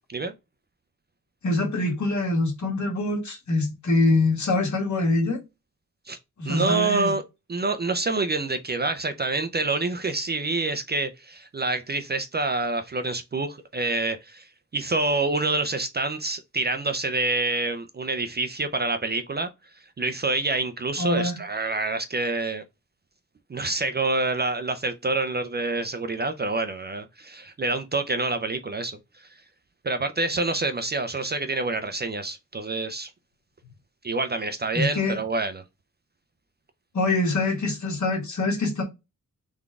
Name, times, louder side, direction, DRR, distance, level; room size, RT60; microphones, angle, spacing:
voice 1, 1.4-5.4 6.4-7.1 21.0-21.4 34.7-35.2 36.9-38.8, left 2 dB, 55° left, 1.6 m, -24 dB
voice 2, 6.4-7.2 7.5-14.5 14.7-19.5 20.0-22.6 23.5-29.3 29.8-33.1 34.0-35.6, right 3 dB, 30° right, 0.4 m, -27 dB
3.8 x 3.5 x 3.5 m
wide cardioid pair, 170°, 34 cm